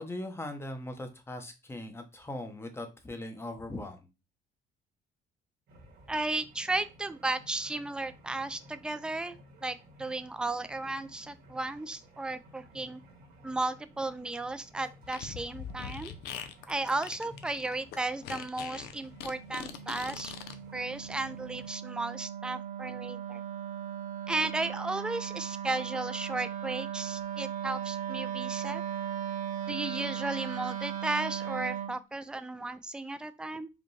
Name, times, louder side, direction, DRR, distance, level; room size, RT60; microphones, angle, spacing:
voice 1, 0.0-4.0, left 1 dB, 15° left, 6 dB, 0.8 m, -40 dB
sound 1, 5.7-21.7, equal, 70° right, 1.3 m, -55 dB
voice 2, 6.1-9.4 9.6-13.0 13.4-16.1 16.7-20.3 20.7-23.4 24.3-28.8 29.7-33.7, right 2 dB, 5° right, 12 dB, 0.3 m, -34 dB
Fart, 15.0-20.5, left 8 dB, 75° left, 0.6 m, -42 dB
Wind instrument woodwind instrument, 19.0-32.0, right 9 dB, 50° right, 0.7 m, -37 dB
5.0 x 2.2 x 3.2 m, 0.27 s
cardioid pair, 110°, 17 cm